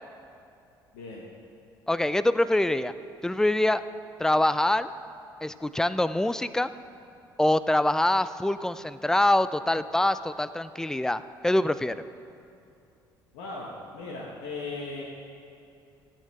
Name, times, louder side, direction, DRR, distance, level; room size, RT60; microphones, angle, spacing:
voice 1, 0.9-1.2 13.3-15.0, left 3 dB, 65° left, -3 dB, 1.3 m, -37 dB
voice 2, 1.9-2.9 3.2-3.8 4.2-4.9 5.4-6.7 7.4-12.0, left 1 dB, 5° left, 14 dB, 0.4 m, -24 dB
16.0 x 8.9 x 3.3 m, 2.6 s
figure-of-eight pair, 50°, 12 cm